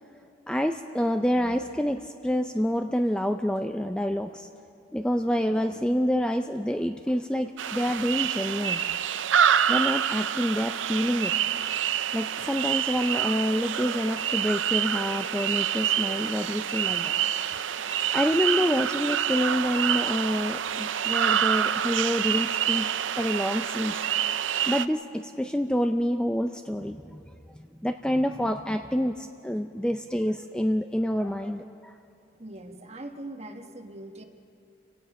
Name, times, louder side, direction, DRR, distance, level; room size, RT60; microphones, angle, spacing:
voice 1, 0.5-4.5 4.9-8.8 9.7-11.3 12.1-17.2 18.1-22.9 23.2-24.0 24.7-27.2 27.8-31.9, equal, 5° left, 6 dB, 0.4 m, -27 dB
sound 1, 7.6-24.9, right 9 dB, 90° right, 0.5 m, -27 dB
voice 2, 32.4-34.2, right 1 dB, 35° right, 5 dB, 1.2 m, -41 dB
29.0 x 17.5 x 5.3 m, 2.5 s
head